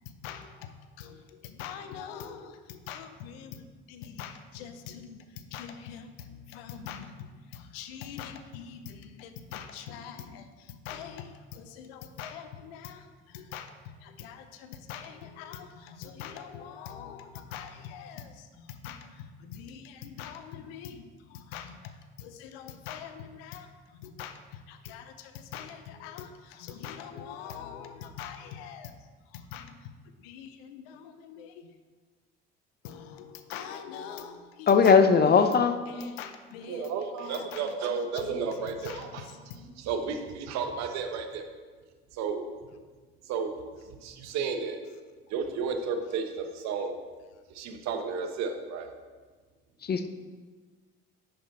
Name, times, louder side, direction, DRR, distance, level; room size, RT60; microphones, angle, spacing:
voice 1, 0.2-5.2 5.5-21.8 22.2-23.7 24.0-28.9 29.3-29.8 30.2-31.5 32.8-35.6 35.9-36.9 37.2-38.0 38.8-39.6, left 8 dB, 75° left, 9 dB, 0.8 m, -43 dB
voice 2, 34.7-35.8 49.9-50.1, left 5 dB, 30° left, 9 dB, 0.7 m, -19 dB
voice 3, 36.6-39.3 39.5-41.4 42.1-42.4 43.3-43.5 43.9-44.8 45.3-46.9 47.5-48.9, right 5 dB, 60° right, 6 dB, 1.1 m, -33 dB
10.0 x 5.2 x 4.2 m, 1.4 s
hypercardioid pair, 60°, 31 cm